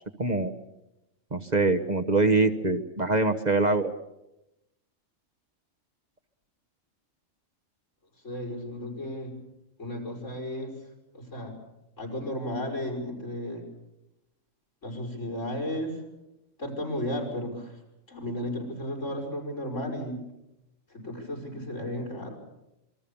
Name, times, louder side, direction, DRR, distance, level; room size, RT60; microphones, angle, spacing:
voice 1, 0.2-0.5 1.3-3.9, right 3 dB, 35° right, 5 dB, 1.2 m, -24 dB
voice 2, 8.2-9.3 9.8-10.7 11.1-11.5 12.0-13.6 14.8-16.0 16.6-17.8 18.1-20.2 20.9-22.4, left 1 dB, 70° left, 0 dB, 6.1 m, -34 dB
27.0 x 22.0 x 7.1 m, 0.91 s
omnidirectional pair, 1.3 m